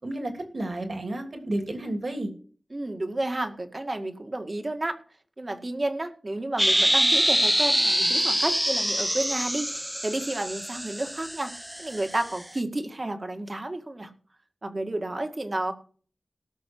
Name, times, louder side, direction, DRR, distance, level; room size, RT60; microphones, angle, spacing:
voice 1, 0.0-2.3, right 1 dB, 60° right, 4 dB, 3.1 m, -31 dB
voice 2, 2.7-5.0 5.4-11.5 11.8-14.1 14.6-15.7, right 2 dB, 40° right, 6 dB, 1.9 m, -31 dB
sound 1, 6.6-12.4, equal, 10° right, 0.7 m, -25 dB
18.5 x 6.3 x 4.6 m, 0.43 s
wide cardioid pair, 60°, 0 cm